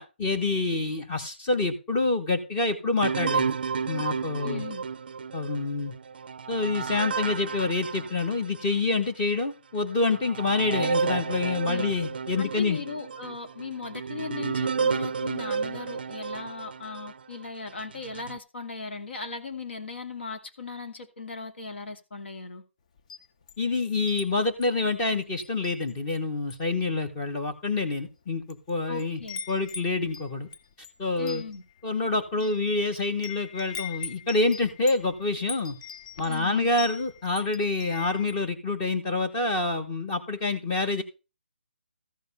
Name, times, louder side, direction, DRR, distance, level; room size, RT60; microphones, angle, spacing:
voice 1, 0.0-3.6 3.9-4.6 5.3-6.0 6.5-12.8 23.6-29.2 29.5-30.5 31.0-31.4 31.8-35.8 36.2-41.0, left 3 dB, 15° left, 5 dB, 1.1 m, -27 dB
sound 1, 3.0-8.8 9.3-9.4 10.0-17.2 17.8-18.4, right 6 dB, 55° right, 0.4 m, -31 dB
voice 2, 4.4-4.8 11.7-11.9 12.4-22.6 28.9-29.4 31.2-31.6 36.2-36.7, left 5 dB, 65° left, 5 dB, 2.5 m, -38 dB
Wind chime, 23.0-24.3 24.6-24.9 25.4-26.2 26.4-26.8 27.5-27.6 28.3-28.7 29.0-38.5, left 6 dB, 35° left, 0.8 m, -41 dB
14.0 x 5.2 x 5.3 m, 0.30 s
hypercardioid pair, 170°, 6 cm